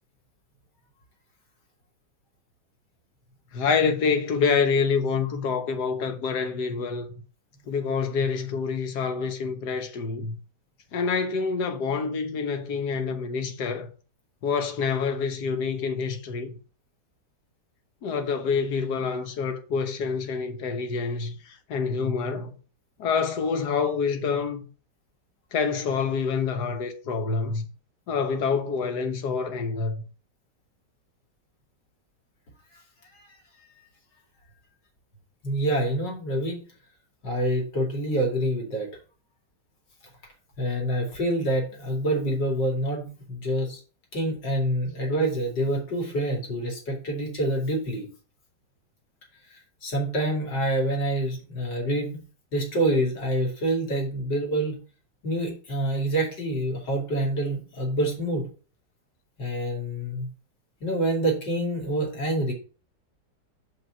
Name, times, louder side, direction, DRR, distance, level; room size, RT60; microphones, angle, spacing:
voice 1, 3.5-7.1 7.7-10.3 10.9-13.9 14.4-16.5 18.0-22.5 23.0-24.6 25.5-27.6 28.1-30.0, left 5 dB, 70° left, 1.6 m, -27 dB
voice 2, 35.4-36.6 37.2-38.9 40.6-43.8 44.1-48.1 49.8-52.2 52.5-54.8 55.2-58.5 59.4-60.3 60.8-62.5, right 1 dB, 85° left, 3.1 m, -26 dB
5.7 x 5.4 x 5.6 m
omnidirectional pair, 1.9 m